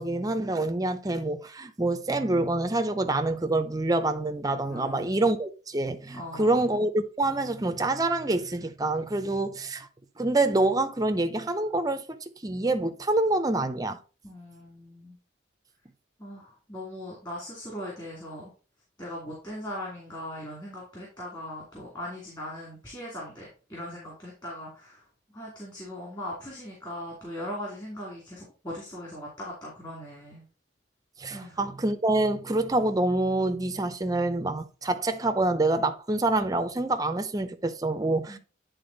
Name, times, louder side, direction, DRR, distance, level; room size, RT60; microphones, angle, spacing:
voice 1, 0.0-9.9 10.2-14.0 31.2-38.4, right 2 dB, 20° right, 0.6 m, -26 dB
voice 2, 4.6-5.3 6.1-6.7 14.2-15.2 16.2-18.5 19.0-25.0 25.3-30.4 31.3-31.6 38.3-38.4, left 1 dB, 20° left, 2.4 m, -39 dB
9.7 x 3.9 x 3.9 m
head